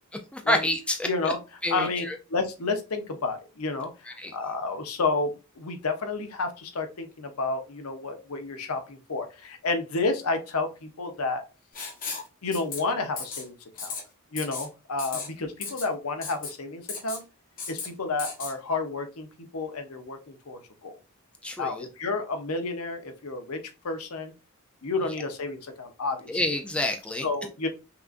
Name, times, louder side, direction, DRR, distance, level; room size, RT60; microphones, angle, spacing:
voice 1, 0.3-1.3 1.6-2.2 4.1-4.3 21.4-21.9 26.3-27.2, left 1 dB, 5° left, 4 dB, 0.4 m, -28 dB
voice 2, 1.0-1.4 1.7-2.0 2.3-11.4 12.4-13.9 14.3-17.2 17.7-19.3 19.5-20.9 21.6-23.6 23.8-24.3 24.8-26.3 27.2-27.7, left 3 dB, 75° left, 7 dB, 0.8 m, -30 dB
Writing, 11.7-12.3 12.5-12.8 13.2-13.4 13.8-14.0 14.4-14.7 15.0-15.3 15.6-15.9 16.2-16.5 16.9-17.2 17.6-17.9 18.2-18.5, left 5 dB, 40° left, 1.2 m, -35 dB
5.7 x 2.5 x 2.4 m, 0.30 s
head